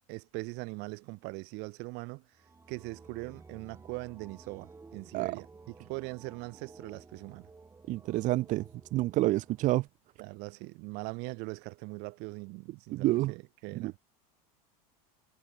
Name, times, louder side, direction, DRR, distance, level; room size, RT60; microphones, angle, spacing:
voice 1, 0.1-2.2 2.7-5.5 5.8-7.5 10.2-14.0, right 28 dB, 60° right, 3.3 m, -41 dB
sound 1, 2.3-9.9, right 4 dB, 15° right, 5.6 m, -54 dB
voice 2, 7.9-8.6 8.9-9.9 12.9-13.3 13.8-13.9, right 17 dB, 40° right, 0.5 m, -28 dB
supercardioid pair, 125°, 20 cm